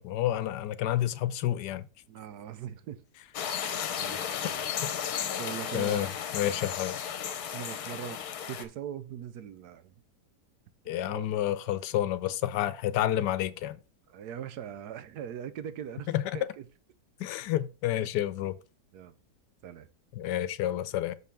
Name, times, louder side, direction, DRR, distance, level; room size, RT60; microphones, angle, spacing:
voice 1, 0.0-1.9 5.7-6.1 6.3-7.0 10.9-13.8 16.1-16.3 17.2-18.6 20.2-21.1, left 12 dB, 85° left, 1.2 m, -29 dB
voice 2, 2.1-3.0 4.0-4.6 5.3-6.1 6.4-6.5 7.5-8.2 8.5-9.9 11.1-11.3 12.2-12.3 14.1-16.1 16.3-16.6 17.2-17.3 18.9-19.2 19.6-19.9, right 9 dB, 75° right, 1.2 m, -41 dB
sound 1, 3.3-8.6, left 8 dB, 70° left, 1.3 m, -34 dB
6.6 x 5.5 x 4.3 m
omnidirectional pair, 1.8 m